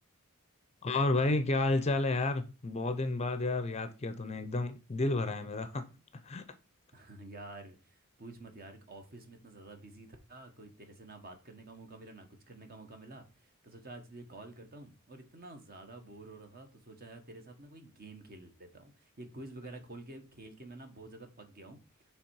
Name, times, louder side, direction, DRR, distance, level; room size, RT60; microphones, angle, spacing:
voice 1, 0.8-5.8 6.2-6.4, left 2 dB, 30° left, 0.5 m, -31 dB
voice 2, 6.9-21.8, right 2 dB, 45° right, 1.2 m, -50 dB
7.0 x 3.4 x 4.7 m
head